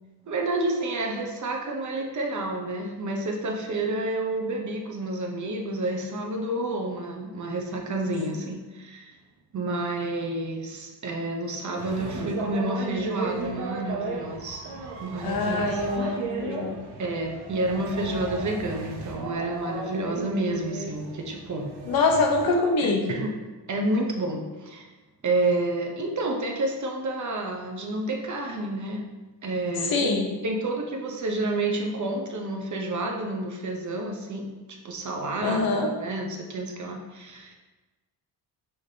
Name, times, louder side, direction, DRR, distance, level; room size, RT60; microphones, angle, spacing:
voice 1, 0.3-9.2 9.5-14.6 15.0-16.2 17.0-21.7 22.8-23.3 23.7-24.9 25.2-29.0 29.4-30.2 30.4-34.5 34.8-37.6, right 2 dB, 45° right, 1 dB, 0.8 m, -29 dB
sound 1, 11.8-22.5, right 3 dB, 75° right, 0.9 m, -35 dB
voice 2, 15.2-16.7 21.9-23.0 29.9-30.3 35.4-35.9, left 3 dB, 60° left, 1 dB, 0.9 m, -24 dB
5.7 x 3.3 x 2.8 m, 1.2 s
cardioid pair, 90°, 41 cm